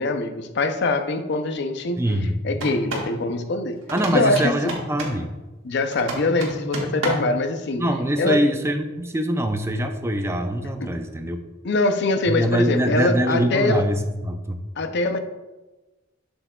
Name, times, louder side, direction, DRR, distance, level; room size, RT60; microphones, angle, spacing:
voice 1, 0.0-2.0 2.4-3.8 4.1-4.7 5.6-7.8 8.2-8.4 10.8-11.0 11.6-13.9 14.8-15.2, left 2 dB, 60° left, 8 dB, 0.5 m, -23 dB
voice 2, 2.0-2.4 3.9-5.3 7.8-11.4 12.3-14.6, right 1 dB, 15° right, 6 dB, 0.4 m, -23 dB
sound 1, 2.5-3.1 3.9-5.2 5.9-7.4, right 1 dB, 85° right, 1.5 m, -30 dB
7.2 x 7.0 x 2.3 m, 1.1 s
head